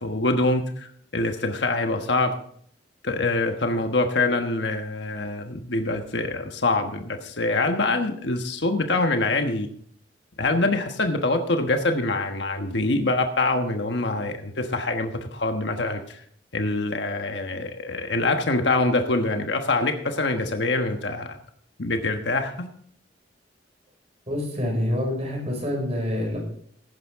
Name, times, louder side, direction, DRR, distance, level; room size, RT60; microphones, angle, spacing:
voice 1, 0.0-2.3 3.0-9.7 10.4-16.2 16.5-21.4 21.8-22.7, left 2 dB, 70° left, 5 dB, 1.3 m, -25 dB
voice 2, 24.3-26.4, left 1 dB, 35° right, 0 dB, 5.7 m, -26 dB
15.5 x 11.0 x 3.7 m, 0.63 s
head